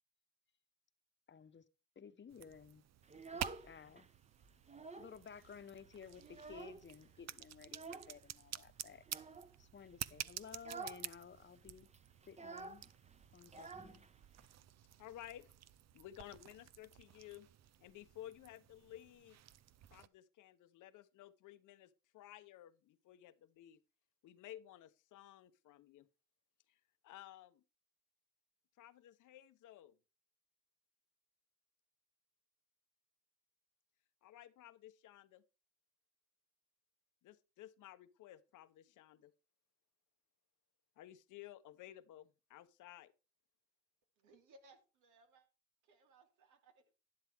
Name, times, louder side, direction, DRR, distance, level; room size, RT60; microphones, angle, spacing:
voice 1, 1.3-1.6 2.0-2.8 3.3-4.1 5.0-9.0 9.6-11.9 12.3-12.9 13.3-14.0, left 6 dB, 40° left, 1.0 m, -55 dB
sound 1, 2.3-20.1, right 11 dB, 60° right, 0.7 m, -51 dB
Child speech kid speaking, 3.0-4.1 4.4-5.2 5.5-5.6 5.9-7.0 7.7-8.2 9.0-9.5 9.9-10.1 10.5-11.1 11.3-11.4 11.7-14.5, right 4 dB, 20° right, 1.0 m, -50 dB
voice 2, 15.0-15.5 15.9-17.5 17.8-19.4 19.9-23.8 24.2-26.1 26.7-27.6 28.8-29.9 34.2-35.4 37.2-39.3 41.0-43.1, left 13 dB, 80° left, 1.0 m, -55 dB
voice 3, 44.2-45.5 45.8-46.8, right 2 dB, 85° right, 2.9 m, -65 dB
11.5 x 10.5 x 3.5 m
cardioid pair, 90°, 30 cm